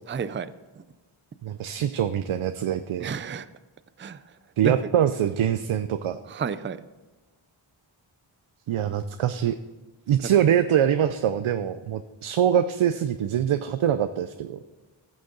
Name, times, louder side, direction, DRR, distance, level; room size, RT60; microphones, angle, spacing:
voice 1, 0.1-0.8 3.0-3.5 4.0-4.2 4.6-4.7 6.3-6.8, right 6 dB, 25° right, 14 dB, 0.4 m, -31 dB
voice 2, 1.4-3.1 4.6-6.2 8.7-9.6 10.1-14.6, right 9 dB, 75° right, 10 dB, 0.6 m, -24 dB
14.5 x 6.4 x 3.8 m, 1.3 s
cardioid pair, 60°, 50 cm